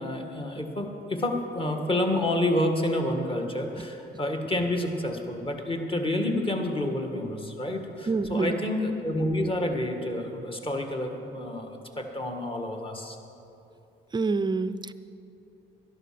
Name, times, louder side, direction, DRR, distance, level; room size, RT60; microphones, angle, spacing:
voice 1, 0.0-11.7 11.9-13.2, left 1 dB, 25° left, 3 dB, 1.7 m, -29 dB
voice 2, 8.1-8.6 14.1-14.9, right 3 dB, 20° right, 14 dB, 0.5 m, -27 dB
12.0 x 12.0 x 5.9 m, 2.8 s
cardioid pair, 90°, 20 cm